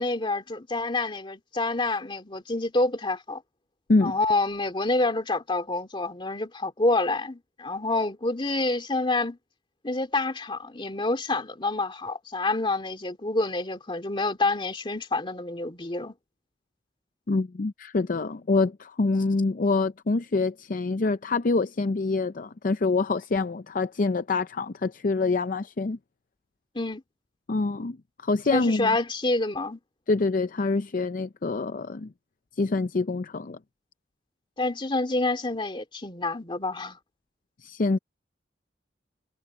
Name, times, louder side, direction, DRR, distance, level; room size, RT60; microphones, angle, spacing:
voice 1, 0.0-3.4 4.0-9.4 9.8-16.1 26.7-27.0 28.5-29.8 34.6-37.0, left 2 dB, 30° left, 2.5 m, -27 dB
voice 2, 17.3-26.0 27.5-28.0 28.2-29.0 30.1-32.1 32.6-33.6 37.6-38.0, left 3 dB, 50° left, 0.5 m, -26 dB
head